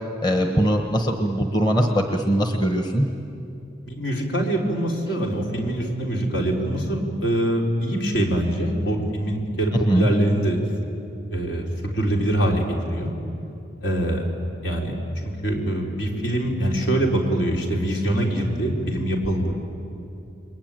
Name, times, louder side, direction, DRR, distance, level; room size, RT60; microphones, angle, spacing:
voice 1, 0.2-3.1 9.7-10.1, equal, 20° left, 4 dB, 1.3 m, -21 dB
voice 2, 3.9-10.6 11.3-12.6 12.9-13.1 13.8-14.2 14.6-14.9 15.2-19.6, right 1 dB, 75° left, 0 dB, 4.3 m, -24 dB
29.5 x 21.5 x 9.2 m, 2.7 s
head